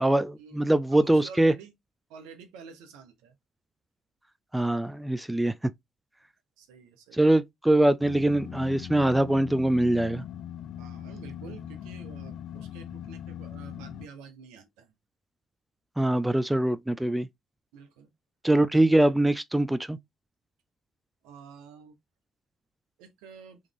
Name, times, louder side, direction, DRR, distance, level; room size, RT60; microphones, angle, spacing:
voice 1, 0.0-1.5 4.5-5.5 7.1-10.2 16.0-17.3 18.4-20.0, right 1 dB, 5° right, 0.4 m, -23 dB
voice 2, 0.9-1.7 2.1-3.3 6.6-7.3 10.8-14.9 17.7-18.1 21.2-22.0 23.0-23.6, right 6 dB, 80° right, 1.1 m, -48 dB
sound 1, 8.0-14.1, left 10 dB, 60° left, 0.4 m, -40 dB
3.6 x 3.3 x 3.4 m
supercardioid pair, 65°, 0 cm